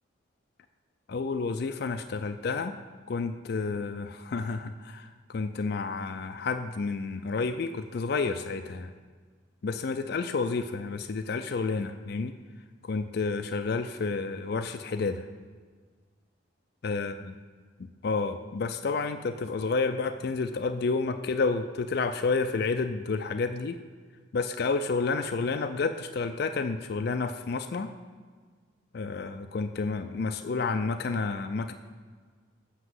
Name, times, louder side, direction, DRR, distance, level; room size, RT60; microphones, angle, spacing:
voice 1, 1.1-2.8 3.1-8.9 9.6-12.3 12.8-15.3 16.8-17.3 18.0-23.8 24.3-27.9 28.9-31.7, left 4 dB, 55° left, 8 dB, 0.4 m, -30 dB
8.0 x 6.3 x 7.6 m, 1.5 s
head